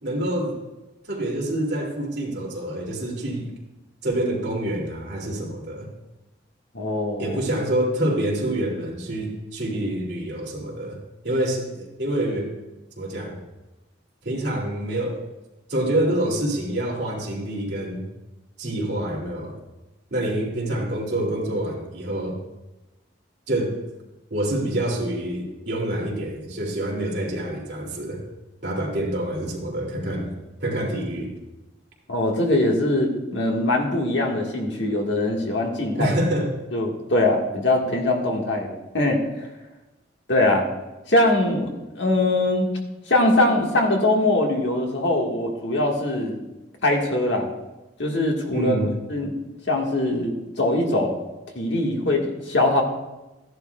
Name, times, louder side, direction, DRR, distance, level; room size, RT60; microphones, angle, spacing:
voice 1, 0.0-0.6 1.1-3.5 4.0-5.9 7.2-11.0 11.2-12.5 13.0-13.4 14.2-15.2 15.7-18.0 18.6-19.5 20.1-22.4 23.5-23.8 24.3-28.2 28.6-30.3 30.6-31.3 36.0-36.5 48.5-48.9, right 1 dB, 65° right, -2 dB, 2.5 m, -26 dB
voice 2, 6.7-7.4 32.1-36.2 36.7-39.2 40.3-40.7 41.1-42.7 43.1-46.4 46.8-47.5 48.0-48.8 49.1-49.3 49.7-51.2 51.5-52.8, left 1 dB, 75° left, 1 dB, 1.5 m, -22 dB
14.5 x 10.5 x 2.3 m, 1.0 s
head